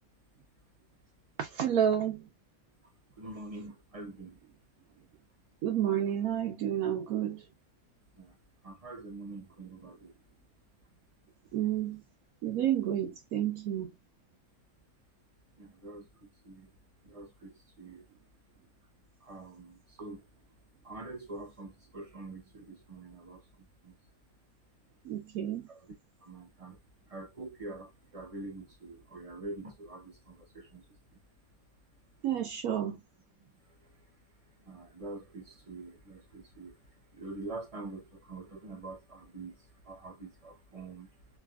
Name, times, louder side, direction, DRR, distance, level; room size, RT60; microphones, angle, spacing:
voice 1, 1.4-2.3 5.6-7.4 11.5-12.0 12.4-13.9 25.0-25.7 32.2-33.0, right 10 dB, 85° right, 1.1 m, -30 dB
voice 2, 3.2-4.4 8.2-8.4 8.6-10.1 15.6-16.1 16.4-16.7 17.0-18.0 19.2-20.2 20.8-23.9 25.7-26.8 27.1-30.9 31.1-31.2 33.4-33.9 34.6-41.1, right 2 dB, 35° right, 0.6 m, -45 dB
3.2 x 2.4 x 2.3 m
omnidirectional pair, 1.5 m